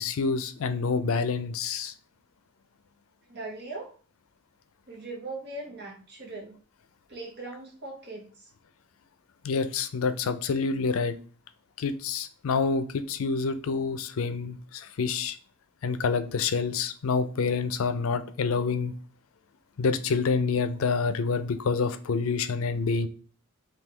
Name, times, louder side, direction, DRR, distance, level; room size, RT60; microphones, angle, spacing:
voice 1, 0.0-1.9 9.4-11.2 11.8-15.4 15.8-18.9 19.8-23.1, left 4 dB, 75° left, 11 dB, 0.4 m, -27 dB
voice 2, 3.3-3.9 4.9-6.5 7.1-8.5, right 2 dB, 55° right, 0 dB, 1.2 m, -40 dB
3.6 x 2.7 x 3.2 m, 0.40 s
head